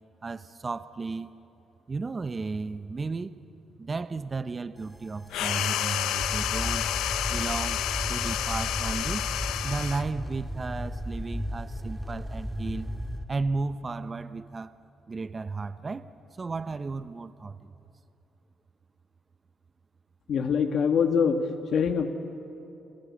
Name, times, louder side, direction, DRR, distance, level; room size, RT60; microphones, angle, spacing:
voice 1, 0.2-1.3 1.9-3.3 3.8-6.8 7.3-7.8 8.1-9.2 9.6-12.9 13.3-14.8 15.1-16.1 16.4-17.7, right 4 dB, 30° right, 13 dB, 0.7 m, -34 dB
sound 1, 4.8-13.2, equal, 5° left, 2.0 m, -35 dB
sound 2, 5.3-10.1, left 12 dB, 85° left, 0.8 m, -30 dB
voice 2, 20.3-22.1, left 6 dB, 65° left, 6 dB, 1.6 m, -24 dB
29.0 x 17.0 x 8.5 m, 2.8 s
cardioid pair, 90°, 0 cm